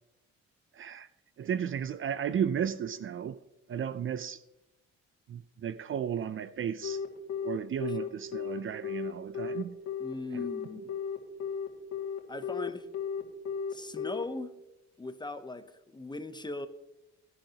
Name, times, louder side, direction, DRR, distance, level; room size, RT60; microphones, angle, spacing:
voice 1, 0.7-1.1 1.4-3.4 3.7-4.4 5.3-7.0 7.4-9.8, right 8 dB, 45° right, 0.5 m, -34 dB
Telephone, 6.8-14.2, left 7 dB, 60° left, 2.1 m, -34 dB
voice 2, 10.0-10.9 12.3-12.9 13.7-14.5 15.0-16.7, left 2 dB, 15° left, 0.7 m, -39 dB
15.5 x 10.5 x 2.9 m
cardioid pair, 90°, 30 cm